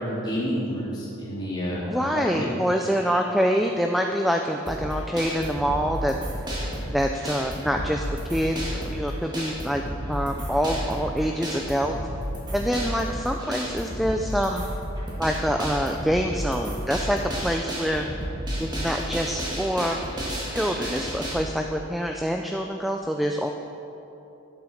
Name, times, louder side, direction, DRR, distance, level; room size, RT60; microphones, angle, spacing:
voice 1, 0.0-2.5, equal, 20° left, -7 dB, 2.9 m, -29 dB
voice 2, 1.9-6.1 6.9-8.0 8.3-9.8 10.1-12.0 12.5-14.7 15.2-18.1 18.6-20.0 20.5-23.5, equal, ahead, 3 dB, 0.3 m, -26 dB
sound 1, 4.7-21.3, equal, 20° right, 2.2 m, -32 dB
11.5 x 8.3 x 6.3 m, 3.0 s
head